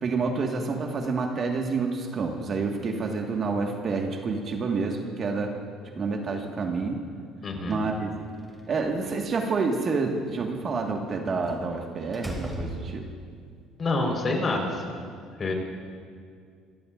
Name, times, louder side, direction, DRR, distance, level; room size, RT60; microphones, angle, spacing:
voice 1, 0.0-5.5 6.0-7.0 7.7-8.1 8.7-13.1, right 4 dB, 40° right, 2 dB, 1.6 m, -28 dB
voice 2, 7.4-7.8 13.8-15.0 15.4-15.5, left 2 dB, 35° left, 1 dB, 4.2 m, -27 dB
Slam, 8.3-9.3 11.5-11.7 12.1-13.4, right 1 dB, 10° right, 2.6 m, -37 dB
27.0 x 16.5 x 2.5 m, 2.2 s
supercardioid pair, 90°, 0 cm